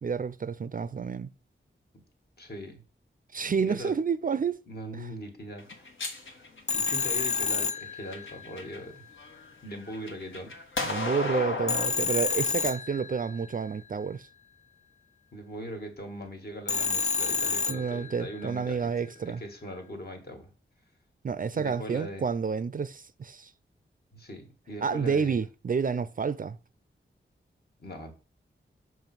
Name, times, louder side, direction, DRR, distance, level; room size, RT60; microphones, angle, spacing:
voice 1, 0.0-1.3 3.3-4.6 5.0-5.1 10.8-14.3 17.7-19.4 21.2-23.5 24.8-26.6, right 6 dB, 45° right, 0.4 m, -29 dB
voice 2, 2.4-2.8 3.6-3.9 4.7-5.9 6.7-9.0 9.6-10.5 15.3-18.9 19.2-20.5 21.5-22.3 24.1-25.4 27.8-28.1, equal, 55° left, 1.7 m, -40 dB
sound 1, 5.6-7.3 7.9-8.8 9.2-11.9, left 3 dB, 80° left, 1.5 m, -34 dB
Telephone, 6.7-8.6 11.7-13.5 16.7-18.4, left 5 dB, 35° left, 0.4 m, -29 dB
6.9 x 3.2 x 5.9 m
wide cardioid pair, 95°, 20 cm